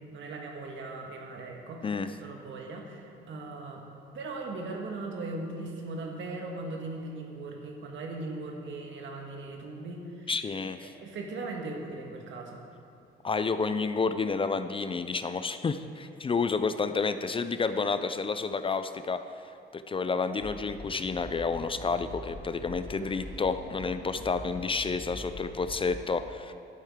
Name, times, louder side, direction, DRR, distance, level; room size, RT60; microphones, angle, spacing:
voice 1, 0.1-3.8 4.1-10.3 10.8-12.6, right 2 dB, 70° right, 1 dB, 1.5 m, -39 dB
voice 2, 10.3-10.9 13.2-19.2 19.7-26.5, left 4 dB, 25° left, 10 dB, 0.4 m, -30 dB
sound 1, 20.4-26.0, left 1 dB, 60° left, 2.1 m, -44 dB
11.5 x 9.0 x 3.6 m, 2.7 s
cardioid pair, 90°, 20 cm